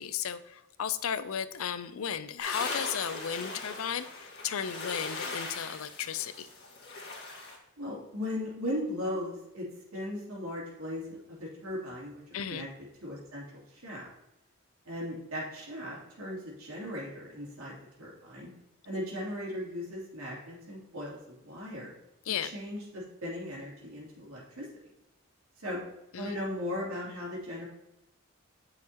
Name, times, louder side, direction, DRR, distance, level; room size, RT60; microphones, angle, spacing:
voice 1, 0.0-6.5 12.3-12.6 22.3-22.5 26.1-26.4, left 8 dB, 75° left, 13 dB, 0.5 m, -34 dB
sound 1, 2.4-7.6, left 3 dB, 55° left, 1.9 m, -39 dB
voice 2, 7.8-9.7 9.9-12.2 12.5-12.7 13.0-14.1 14.8-18.5 18.8-21.9 22.4-24.7 25.6-25.8 26.1-27.7, left 1 dB, 85° right, -5 dB, 2.9 m, -37 dB
9.0 x 5.8 x 2.9 m, 0.91 s
head